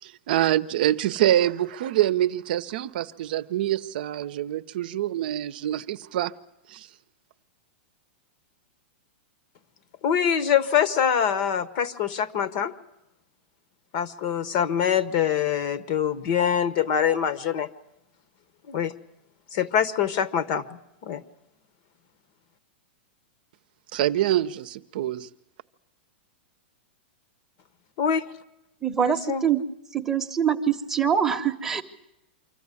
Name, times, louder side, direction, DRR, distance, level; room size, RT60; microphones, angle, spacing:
voice 1, 0.0-6.3 6.7-6.9 23.9-25.3, right 13 dB, 55° right, 0.8 m, -25 dB
voice 2, 10.0-12.7 13.9-17.7 18.7-18.9 19.5-21.2 28.0-28.3 29.0-29.5, left 8 dB, 40° left, 1.0 m, -24 dB
voice 3, 28.8-29.6 29.9-31.8, right 8 dB, 5° right, 1.0 m, -24 dB
25.0 x 14.0 x 9.7 m
supercardioid pair, 165°, 6 cm